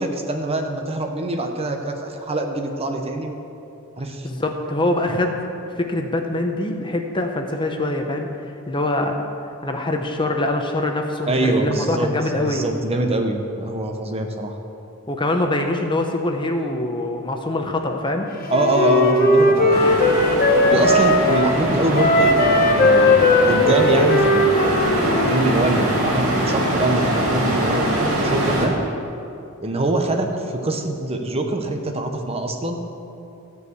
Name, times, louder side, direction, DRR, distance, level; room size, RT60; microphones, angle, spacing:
voice 1, 0.0-3.4 4.0-4.3 11.3-12.1 12.4-14.6 18.5-19.9 20.7-28.7 29.6-32.8, right 2 dB, 30° right, 4 dB, 0.9 m, -24 dB
voice 2, 4.2-5.4 5.8-9.3 9.6-12.6 15.1-18.3, left 2 dB, 25° left, 3 dB, 0.8 m, -24 dB
Wind instrument woodwind instrument, 18.5-21.5 21.9-25.4, left 1 dB, 45° left, 1.1 m, -17 dB
sound 1, 19.7-28.7, right 1 dB, 70° right, 2.0 m, -23 dB
14.0 x 4.8 x 8.1 m, 2.7 s
head